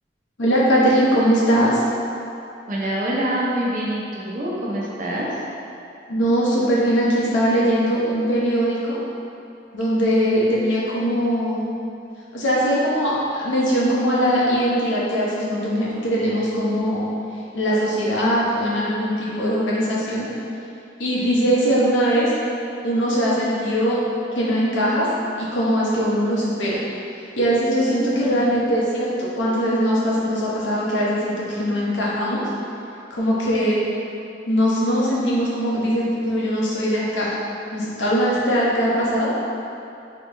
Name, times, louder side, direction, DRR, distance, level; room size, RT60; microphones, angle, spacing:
voice 1, 0.4-1.8 6.1-9.0 9.7-11.6 12.3-17.1 17.5-20.3 21.0-22.3 22.8-24.0 24.4-25.1 25.4-26.8 27.4-32.4 33.1-33.8 34.5-37.3 37.7-39.3, equal, 85° left, -6 dB, 0.9 m, -21 dB
voice 2, 2.7-5.3 27.8-28.5, right 1 dB, 45° right, -5 dB, 0.7 m, -26 dB
3.9 x 3.0 x 3.3 m, 2.7 s
head